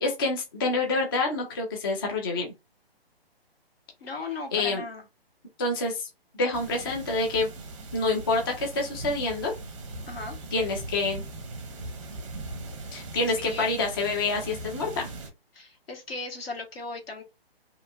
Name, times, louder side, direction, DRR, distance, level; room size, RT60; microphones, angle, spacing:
voice 1, 0.0-2.5 4.5-4.8 5.6-6.1 6.3-7.5 7.9-9.5 10.5-11.2 12.9-15.1, left 3 dB, 25° left, 0.4 m, -27 dB
voice 2, 4.0-5.0 10.1-10.4 13.3-13.7 15.5-17.2, left 3 dB, 70° left, 1.2 m, -37 dB
sound 1, 6.5-15.3, right 2 dB, 30° right, 0.6 m, -40 dB
2.7 x 2.4 x 2.3 m
figure-of-eight pair, 140°, 31 cm